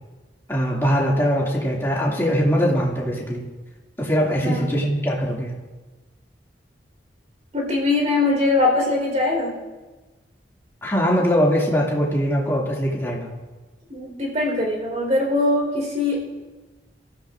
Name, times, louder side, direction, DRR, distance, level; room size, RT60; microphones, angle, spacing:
voice 1, 0.5-3.5 4.0-5.6 10.8-13.3, equal, 15° left, -4 dB, 2.4 m, -21 dB
voice 2, 4.4-4.8 7.5-9.6 13.9-16.2, left 2 dB, 35° right, -1 dB, 4.3 m, -22 dB
27.0 x 14.5 x 2.6 m, 1.2 s
head